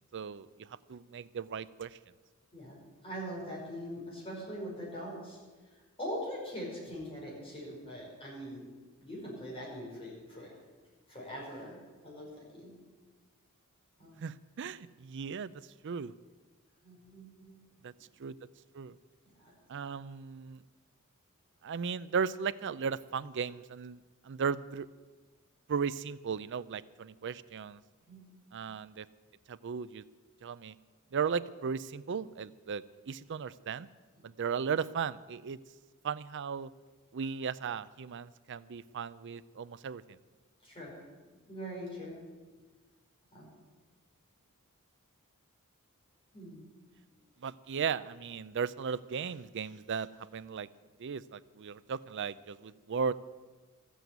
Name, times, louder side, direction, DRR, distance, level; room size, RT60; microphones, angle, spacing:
voice 1, 0.1-2.0 14.2-16.1 17.8-17.9 18.2-18.4 18.7-19.0 19.7-20.6 21.6-24.9 25.7-27.8 28.5-29.1 29.5-30.0 30.4-30.8 31.1-33.9 34.2-35.6 36.0-36.7 37.1-40.2 47.4-50.7 51.0-53.1, right 6 dB, 55° right, 16 dB, 0.5 m, -36 dB
voice 2, 3.0-5.4 5.6-8.6 9.0-10.5 11.1-11.8 12.0-12.7 14.0-14.2 16.8-17.6 19.4-19.5 28.1-28.2 40.6-40.9 41.5-42.2 43.3-43.5 46.3-46.6, equal, 25° left, -3 dB, 5.4 m, -42 dB
13.5 x 8.3 x 9.2 m, 1.3 s
head